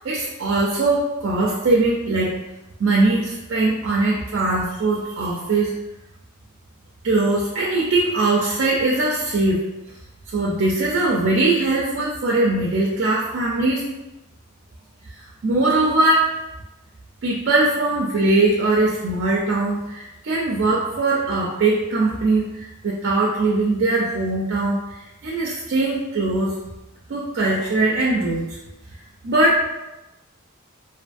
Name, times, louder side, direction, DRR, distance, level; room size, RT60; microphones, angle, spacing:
voice 1, 0.0-2.4 2.8-5.8 7.0-9.7 10.3-13.8 15.4-16.4 17.2-25.0 25.2-26.6 27.1-28.5 29.2-29.7, right 2 dB, 55° right, -3 dB, 0.4 m, -21 dB
2.5 x 2.4 x 2.5 m, 0.96 s
head